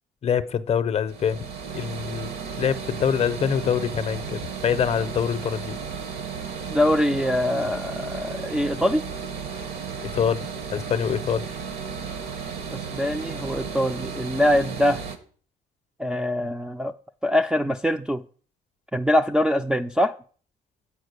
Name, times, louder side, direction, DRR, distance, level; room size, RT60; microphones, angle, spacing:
voice 1, 0.2-1.4 1.7-2.3 2.6-5.8 10.0-11.5, left 8 dB, 40° left, 0.6 m, -25 dB
sound 1, 1.1-15.2, right 6 dB, 70° right, 1.2 m, -34 dB
voice 2, 6.7-9.0 12.7-15.0 16.0-16.9 17.2-18.2 18.9-20.1, left 1 dB, 5° right, 0.3 m, -23 dB
8.6 x 4.3 x 6.6 m
cardioid pair, 110°, 17 cm